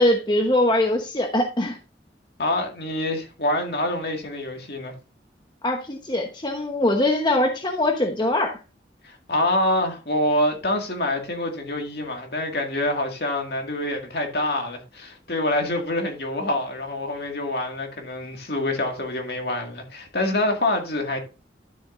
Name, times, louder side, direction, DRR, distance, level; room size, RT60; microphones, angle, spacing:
voice 1, 0.0-1.8 5.6-8.6, left 1 dB, 25° left, 1.0 m, -22 dB
voice 2, 2.4-4.9 9.0-21.2, left 1 dB, 60° left, 2.0 m, -26 dB
12.0 x 7.1 x 2.5 m
head